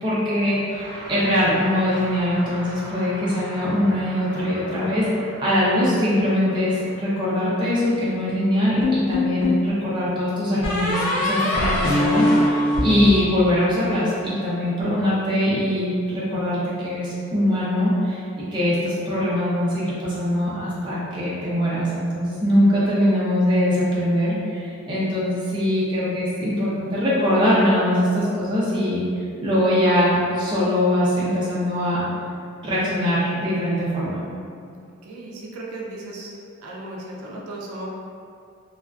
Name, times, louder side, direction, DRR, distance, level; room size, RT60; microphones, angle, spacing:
voice 1, 0.0-18.2 18.5-29.0 29.4-32.1 32.6-34.2, left 1 dB, 20° right, -9 dB, 0.5 m, -22 dB
sound 1, 0.7-10.2, equal, 60° right, 0.9 m, -40 dB
sound 2, 8.8-9.7 10.6-14.0, left 1 dB, 85° left, 0.5 m, -22 dB
voice 2, 35.0-36.4 36.6-37.9, right 2 dB, 80° right, -2 dB, 0.4 m, -36 dB
2.4 x 2.3 x 2.2 m, 2.4 s
head